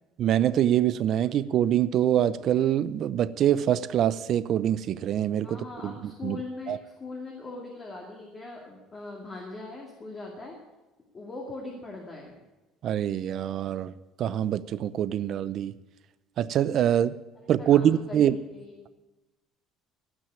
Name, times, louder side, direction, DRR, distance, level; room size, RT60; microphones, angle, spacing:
voice 1, 0.2-6.4 6.7-6.8 12.8-13.9 14.2-15.7 16.4-17.1 17.5-18.4, right 10 dB, 45° right, 0.6 m, -24 dB
voice 2, 5.4-10.6 11.1-12.4 17.4-18.8, left 3 dB, 20° left, 2.5 m, -41 dB
17.5 x 6.3 x 8.4 m
cardioid pair, 150°, 0 cm